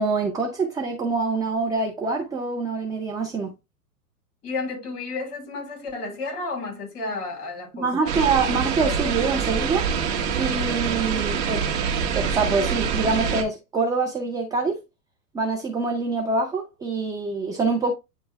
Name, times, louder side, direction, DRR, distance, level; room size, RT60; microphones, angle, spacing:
voice 1, 0.0-3.5 7.7-9.9 10.4-11.6 12.1-14.8 15.3-17.9, right 4 dB, 10° right, 0.5 m, -25 dB
voice 2, 4.4-8.1, left 3 dB, 30° left, 4.2 m, -32 dB
sound 1, 8.1-13.4, right 6 dB, 50° right, 1.8 m, -25 dB
9.4 x 3.2 x 3.3 m
hypercardioid pair, 120°, 47 cm